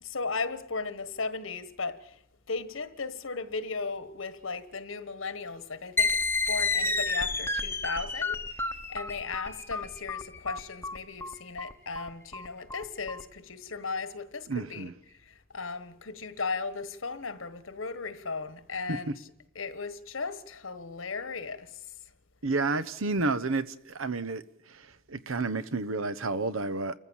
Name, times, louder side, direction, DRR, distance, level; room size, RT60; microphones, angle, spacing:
voice 1, 0.0-2.2 2.5-6.2 6.5-14.9 15.2-19.3 19.5-21.8, left 4 dB, 80° left, 1.4 m, -36 dB
sound 1, 6.0-13.2, left 3 dB, 10° left, 0.8 m, -30 dB
voice 2, 14.5-14.9 18.9-19.0 22.4-24.4 25.1-26.9, right 3 dB, 85° right, 1.0 m, -30 dB
29.5 x 14.5 x 7.3 m
head